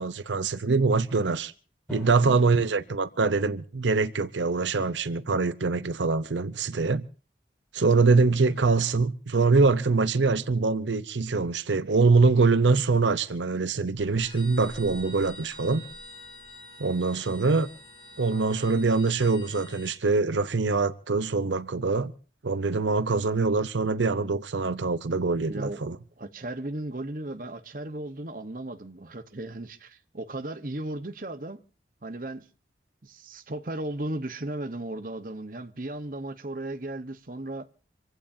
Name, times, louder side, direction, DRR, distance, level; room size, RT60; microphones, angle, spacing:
voice 1, 0.0-1.5 1.9-7.1 7.7-15.8 16.8-17.7 18.2-22.1 22.4-26.0, right 4 dB, 85° right, 0.8 m, -24 dB
Drum, 1.9-3.8, equal, 5° left, 5.9 m, -45 dB
sound 1, 14.0-20.0, equal, 30° left, 2.8 m, -46 dB
voice 2, 25.5-25.8 26.2-31.6 32.0-32.5 33.0-37.7, right 1 dB, 50° right, 1.0 m, -36 dB
26.5 x 16.0 x 2.7 m
head